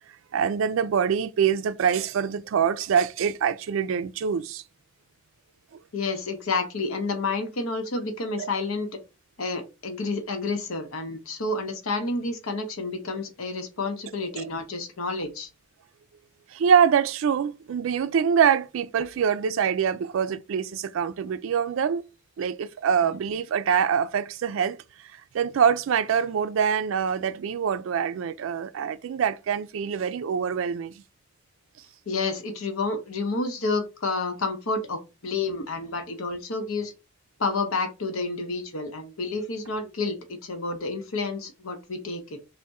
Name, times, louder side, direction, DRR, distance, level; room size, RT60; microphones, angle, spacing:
voice 1, 0.3-4.6 8.4-8.5 14.3-14.5 16.5-22.0 22.4-31.0, right 7 dB, 75° right, 0.3 m, -24 dB
voice 2, 5.9-8.9 9.4-15.5 32.1-36.9 37.4-42.4, left 3 dB, 90° left, 0.8 m, -30 dB
3.4 x 2.1 x 4.0 m
head